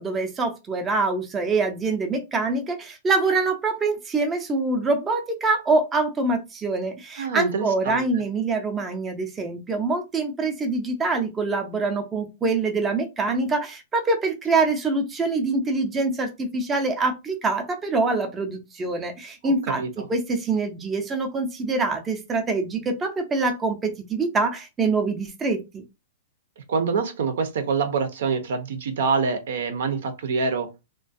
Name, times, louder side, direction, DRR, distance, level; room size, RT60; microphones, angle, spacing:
voice 1, 0.0-19.8 20.1-25.8, right 3 dB, 15° right, 0.5 m, -25 dB
voice 2, 7.2-8.1 19.4-20.1 26.7-30.7, right 5 dB, 75° right, 0.6 m, -26 dB
2.4 x 2.2 x 2.5 m
hypercardioid pair, 145°, 0 cm